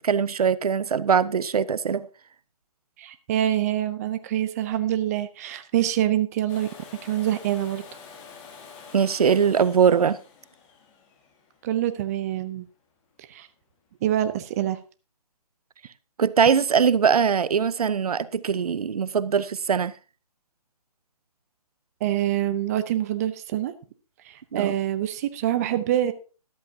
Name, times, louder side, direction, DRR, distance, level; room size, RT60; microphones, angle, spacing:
voice 1, 0.0-2.1 8.9-10.2 16.2-19.9 24.5-24.7, right 7 dB, 70° right, 0.6 m, -21 dB
voice 2, 3.0-6.7 7.0-7.8 11.6-12.7 13.3-13.5 14.0-14.8 22.0-23.7 24.2-26.1, right 12 dB, 25° right, 0.6 m, -25 dB
Domestic sounds home sounds, 6.5-12.3 14.2-14.3, left 6 dB, 20° left, 1.8 m, -47 dB
13.5 x 12.0 x 2.8 m
hypercardioid pair, 150°, 20 cm